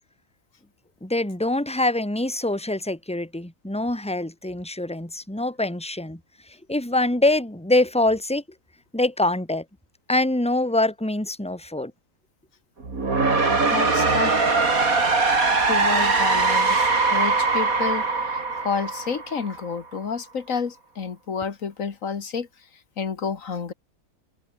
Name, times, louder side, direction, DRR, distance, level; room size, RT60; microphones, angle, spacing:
voice 1, 1.0-8.4 8.9-9.6 10.1-11.9, left 2 dB, 5° left, 3.0 m, -24 dB
sound 1, 12.8-19.8, right 3 dB, 65° right, 3.7 m, -21 dB
voice 2, 13.7-14.3 15.6-22.5 23.0-23.7, left 6 dB, 60° left, 1.9 m, -30 dB
open air
omnidirectional pair, 1.6 m